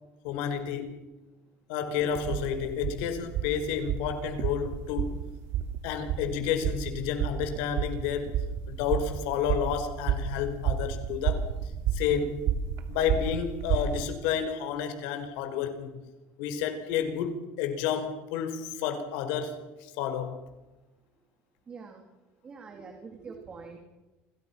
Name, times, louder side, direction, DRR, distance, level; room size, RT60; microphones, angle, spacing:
voice 1, 0.2-1.0 1.7-5.2 5.8-8.3 8.7-11.4 11.9-12.4 12.9-15.9 16.4-20.4, left 8 dB, 85° left, 4.7 m, -30 dB
sound 1, 2.1-14.0, right 8 dB, 55° right, 2.7 m, -31 dB
voice 2, 21.7-22.1 22.4-23.8, right 5 dB, 20° right, 3.1 m, -44 dB
28.5 x 27.0 x 5.9 m
cardioid pair, 170°, 5 cm